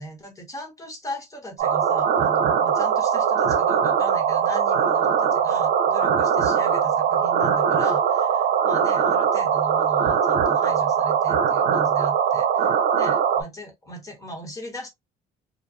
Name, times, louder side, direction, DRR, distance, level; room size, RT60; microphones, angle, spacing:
voice 1, 0.0-14.9, equal, 20° left, 1.4 m, -38 dB
sound 1, 1.6-13.4, right 7 dB, 65° right, 0.9 m, -21 dB
2.5 x 2.3 x 2.7 m
cardioid pair, 110°, 17 cm